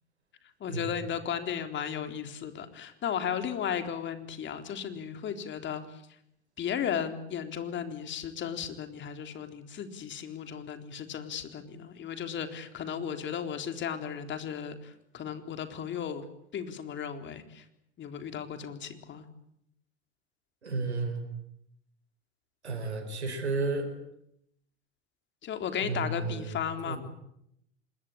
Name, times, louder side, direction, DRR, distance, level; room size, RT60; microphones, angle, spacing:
voice 1, 0.6-6.0 6.6-16.3 16.5-17.7 18.0-19.3 25.4-27.0, left 8 dB, 35° left, 7 dB, 4.0 m, -35 dB
voice 2, 20.6-21.2 22.6-23.9 25.8-26.6 26.8-27.0, right 3 dB, 90° right, 5 dB, 5.2 m, -32 dB
26.5 x 21.5 x 8.9 m, 0.76 s
hypercardioid pair, 85°, 32 cm